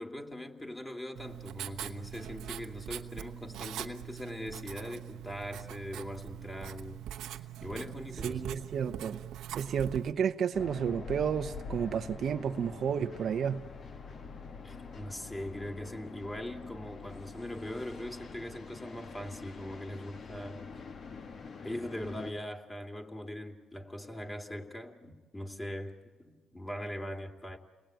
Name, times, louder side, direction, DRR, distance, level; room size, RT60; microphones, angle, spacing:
voice 1, 0.0-7.0 7.6-8.5 14.6-20.7 21.6-27.6, left 1 dB, 15° left, 2.7 m, -41 dB
Writing, 1.2-10.1, right 11 dB, 80° right, 1.1 m, -42 dB
voice 2, 8.2-9.2 9.5-13.6, right 7 dB, 60° right, 0.8 m, -31 dB
sound 1, 10.5-22.3, left 5 dB, 50° left, 1.7 m, -45 dB
29.5 x 20.0 x 9.1 m
cardioid pair, 90°, 0 cm